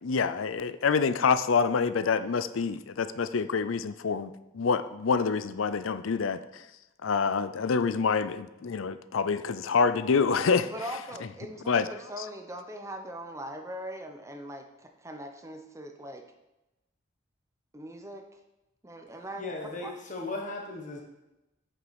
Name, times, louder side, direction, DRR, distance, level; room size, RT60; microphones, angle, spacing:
voice 1, 0.0-6.6 7.0-10.7 11.7-11.9 12.2-12.3, left 5 dB, 85° left, 13 dB, 0.5 m, -27 dB
voice 2, 10.7-16.2 17.7-18.3 18.8-19.5 19.8-19.9, equal, 15° right, 5 dB, 0.8 m, -40 dB
voice 3, 19.3-21.0, left 2 dB, 40° left, 1 dB, 1.4 m, -37 dB
9.2 x 6.8 x 4.9 m, 0.96 s
head